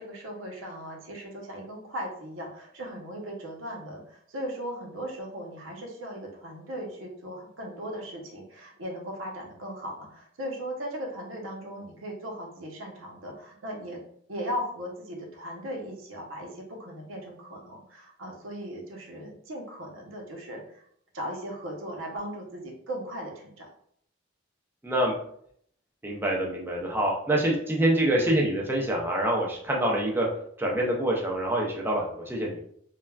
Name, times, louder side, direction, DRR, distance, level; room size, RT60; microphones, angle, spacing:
voice 1, 0.0-14.0 14.3-20.8 21.1-23.7, equal, 90° right, 0 dB, 0.7 m, -38 dB
voice 2, 24.8-25.1 26.0-30.3 30.6-32.6, right 1 dB, 10° right, -1 dB, 0.4 m, -26 dB
3.3 x 2.2 x 2.2 m, 0.66 s
head